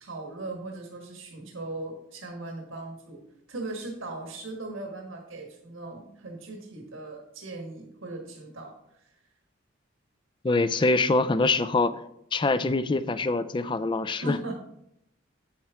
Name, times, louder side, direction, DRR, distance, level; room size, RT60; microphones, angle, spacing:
voice 1, 0.0-9.1 14.1-14.5, right 2 dB, 75° right, 1 dB, 1.4 m, -39 dB
voice 2, 10.4-12.0 12.3-14.4, left 3 dB, 25° left, 13 dB, 0.3 m, -24 dB
8.5 x 7.3 x 3.5 m, 0.78 s
head